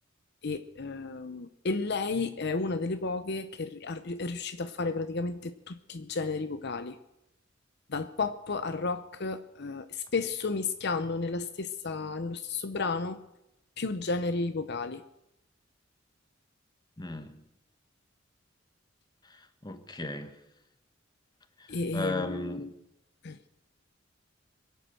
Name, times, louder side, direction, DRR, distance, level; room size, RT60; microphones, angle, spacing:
voice 1, 0.4-7.0 7.9-13.2 13.8-15.0 21.7-22.7 23.2-23.4, left 3 dB, 60° left, 0.7 m, -32 dB
voice 2, 17.0-17.4 19.3-20.3 21.9-22.7, left 2 dB, 20° left, 1.3 m, -36 dB
22.5 x 8.3 x 7.8 m
head